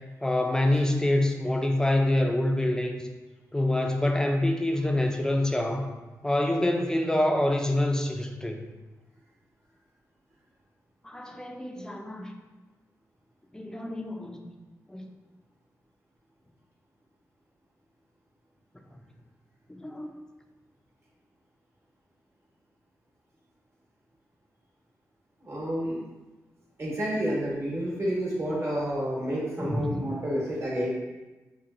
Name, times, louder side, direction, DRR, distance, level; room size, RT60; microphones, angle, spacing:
voice 1, 0.2-3.0 3.5-5.9 6.2-8.6 11.0-12.3 13.5-14.6 14.9-15.1 19.7-20.1 29.6-30.0, left 1 dB, 10° left, 3 dB, 0.5 m, -26 dB
voice 2, 25.4-26.0 26.8-30.9, equal, 50° right, -5 dB, 1.5 m, -29 dB
5.8 x 2.2 x 2.5 m, 1.2 s
cardioid pair, 70°, 6 cm